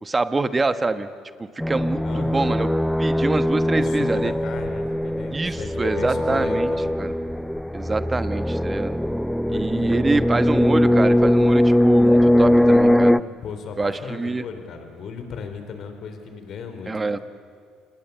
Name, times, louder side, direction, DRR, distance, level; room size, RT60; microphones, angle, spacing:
voice 1, 0.0-1.1 1.4-2.7 3.0-4.3 5.3-6.7 7.0-7.1 7.7-9.0 9.5-13.2 13.8-14.4 16.9-17.2, right 3 dB, 25° right, 12 dB, 1.3 m, -25 dB
sound 1, 1.6-13.2, left 1 dB, 5° left, 0.5 m, -20 dB
voice 2, 2.0-2.6 3.7-7.0 9.5-10.2 12.3-16.9, left 5 dB, 55° left, 7 dB, 4.1 m, -36 dB
28.0 x 20.5 x 8.3 m, 2.2 s
supercardioid pair, 70°, 0 cm